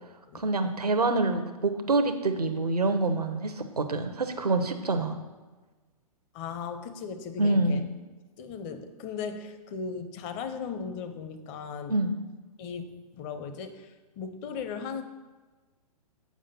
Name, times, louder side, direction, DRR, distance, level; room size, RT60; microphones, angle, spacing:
voice 1, 0.3-5.2 7.4-7.8 11.9-12.1, right 2 dB, 90° right, 7 dB, 0.7 m, -26 dB
voice 2, 6.3-7.8 8.4-12.0 12.6-15.0, left 6 dB, 30° left, 8 dB, 0.7 m, -37 dB
7.3 x 5.1 x 5.6 m, 1.3 s
figure-of-eight pair, 120°, 19 cm